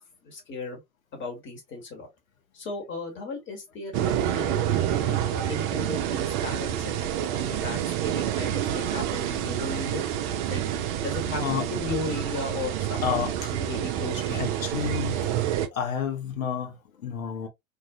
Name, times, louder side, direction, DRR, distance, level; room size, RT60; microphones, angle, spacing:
voice 1, 0.2-0.8 1.1-2.1 2.5-10.1 10.5-10.6 11.0-14.5, left 3 dB, 30° left, 1.3 m, -36 dB
sound 1, 3.9-15.7, right 11 dB, 40° right, 0.4 m, -28 dB
voice 2, 13.0-13.5 14.3-15.3 15.7-17.5, left 7 dB, 75° left, 0.9 m, -30 dB
2.5 x 2.4 x 2.3 m
figure-of-eight pair, 80°, 41 cm